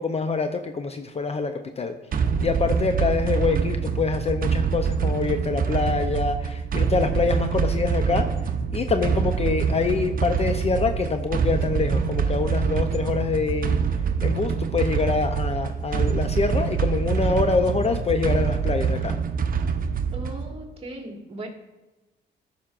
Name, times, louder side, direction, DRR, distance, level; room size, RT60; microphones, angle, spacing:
voice 1, 0.0-2.0 2.4-8.3 8.7-13.8 14.2-19.2, left 4 dB, 30° left, 7 dB, 0.5 m, -25 dB
sound 1, 2.1-20.5, right 6 dB, 45° right, 0.7 m, -25 dB
voice 2, 20.1-21.5, right 1 dB, 30° right, 0 dB, 1.9 m, -37 dB
13.0 x 5.7 x 2.5 m, 1.1 s
cardioid pair, 90°, 20 cm